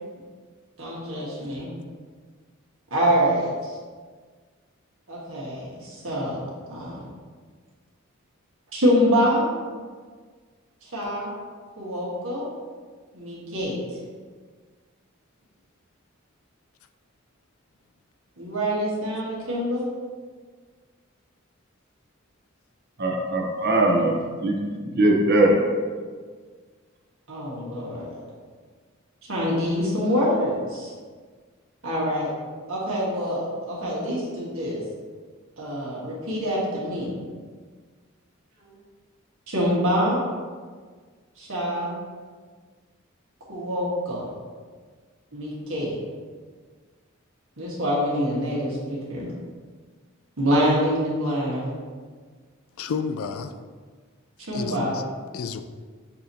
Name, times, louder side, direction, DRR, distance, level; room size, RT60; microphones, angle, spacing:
voice 1, 0.8-1.7 2.9-3.7 5.1-7.0 8.7-9.5 10.8-11.3 11.8-12.5 13.1-13.8 18.4-19.9 24.0-24.1 27.3-28.2 29.3-30.9 31.8-32.3 32.7-34.8 35.6-37.1 38.6-38.7 39.5-40.2 41.4-41.9 43.5-44.3 45.3-46.0 47.6-49.3 50.4-51.7 54.4-54.9, equal, 80° right, -6 dB, 1.4 m, -25 dB
voice 2, 23.0-24.6 24.8-25.6, right 1 dB, 55° right, 0 dB, 0.7 m, -20 dB
voice 3, 52.8-53.5 54.5-55.0 55.3-55.6, left 5 dB, 80° left, 9 dB, 0.3 m, -30 dB
6.7 x 2.8 x 2.7 m, 1.5 s
head